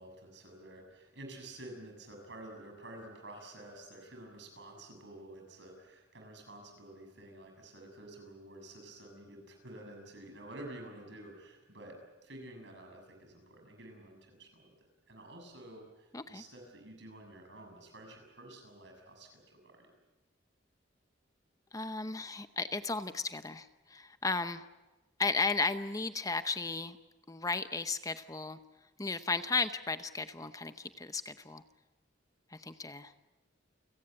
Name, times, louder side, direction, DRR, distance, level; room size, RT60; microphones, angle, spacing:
voice 1, 0.0-14.7 15.1-19.9, right 1 dB, 65° right, 3 dB, 7.0 m, -50 dB
voice 2, 21.7-24.6 25.2-27.0 27.3-28.6 29.0-31.6 32.5-33.1, left 3 dB, 20° left, 10 dB, 0.7 m, -34 dB
29.5 x 17.5 x 8.9 m, 1.1 s
head